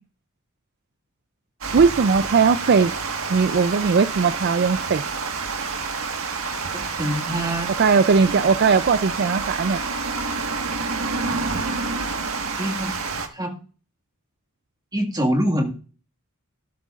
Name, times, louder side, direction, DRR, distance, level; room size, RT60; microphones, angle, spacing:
Water, 1.6-13.3, right 4 dB, 75° right, 1.4 m, -28 dB
voice 1, 1.7-2.9 3.3-5.0 7.8-9.8, right 5 dB, 50° right, 12 dB, 0.4 m, -18 dB
voice 2, 6.7-7.7 12.6-12.9 13.3-13.6 14.9-15.7, equal, 20° right, 3 dB, 1.9 m, -24 dB
12.5 x 12.5 x 2.4 m, 0.37 s
head